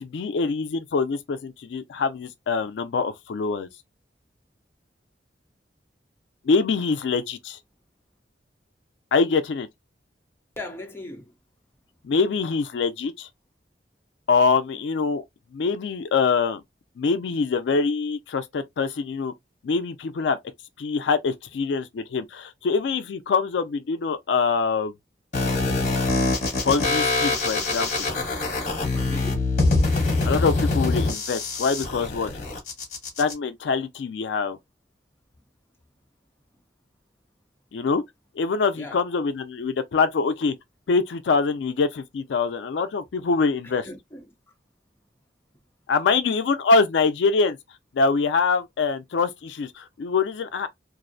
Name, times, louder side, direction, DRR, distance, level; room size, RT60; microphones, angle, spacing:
voice 1, 0.0-3.7 6.5-7.6 9.1-9.7 12.0-13.3 14.3-15.2 15.5-16.6 17.0-19.3 19.6-20.4 20.8-24.9 26.6-28.1 30.2-32.3 33.2-34.6 37.7-38.0 38.4-40.5 40.9-43.9 45.9-47.6 47.9-50.7, left 4 dB, 85° left, 0.4 m, -24 dB
voice 2, 10.6-11.3 28.9-29.5 38.8-39.0 43.8-44.3, left 1 dB, 15° left, 0.7 m, -38 dB
sound 1, 25.3-33.3, left 3 dB, 45° left, 1.0 m, -24 dB
2.5 x 2.0 x 2.5 m
head